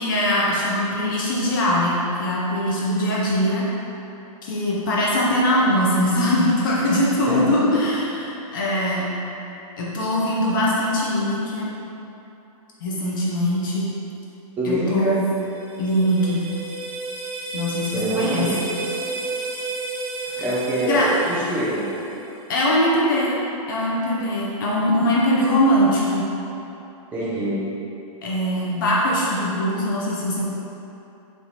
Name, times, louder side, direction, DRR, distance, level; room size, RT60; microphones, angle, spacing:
voice 1, 0.0-3.6 4.4-9.1 9.8-11.7 12.8-13.9 14.6-15.3 15.8-16.5 17.5-18.5 20.8-21.1 22.5-23.3 23.7-26.2 28.2-30.4, equal, 35° left, -5 dB, 0.6 m, -21 dB
voice 2, 14.6-15.2 17.9-18.8 20.4-21.9 27.1-27.7, right 1 dB, 10° right, -8 dB, 0.5 m, -25 dB
sound 1, 15.3-22.4, right 2 dB, 80° right, 0.7 m, -32 dB
4.9 x 3.3 x 2.8 m, 3.0 s
hypercardioid pair, 175°, 18 cm